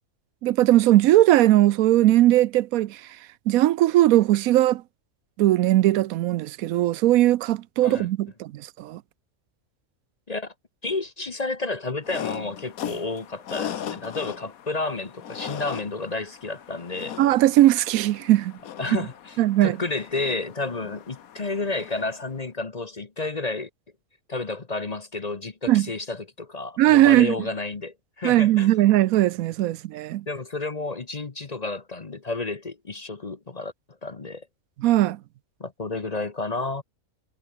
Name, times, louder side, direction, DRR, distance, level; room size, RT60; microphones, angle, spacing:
voice 1, 0.4-3.0 3.5-4.8 5.4-8.5 8.8-9.0 17.2-18.5 18.9-19.0 19.4-19.8 25.7-25.9 26.8-27.3 28.2-30.2 34.8-35.2, right 14 dB, 80° right, 1.0 m, -19 dB
voice 2, 10.8-17.2 18.8-23.7 24.3-28.7 30.3-33.7 34.0-34.5 35.6-36.8, left 3 dB, 30° left, 1.0 m, -31 dB
sound 1, 12.0-22.4, left 9 dB, 80° left, 1.5 m, -38 dB
omnidirectional pair, 1.5 m